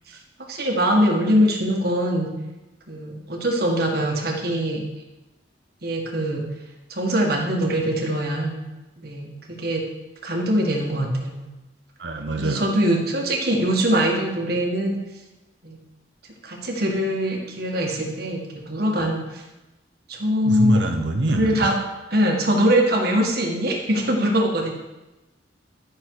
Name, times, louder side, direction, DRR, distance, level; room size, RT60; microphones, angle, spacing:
voice 1, 0.5-2.3 2.9-4.8 5.8-6.4 6.9-8.6 9.0-9.3 9.6-9.8 10.2-11.5 12.4-15.0 15.6-15.8 16.4-19.4 20.1-20.8 21.3-21.7 22.1-24.7, equal, 55° right, 1 dB, 1.7 m, -22 dB
voice 2, 12.0-12.7 19.0-19.1 20.4-21.7, right 2 dB, 75° right, 4 dB, 0.9 m, -24 dB
11.5 x 6.5 x 4.8 m, 1.1 s
head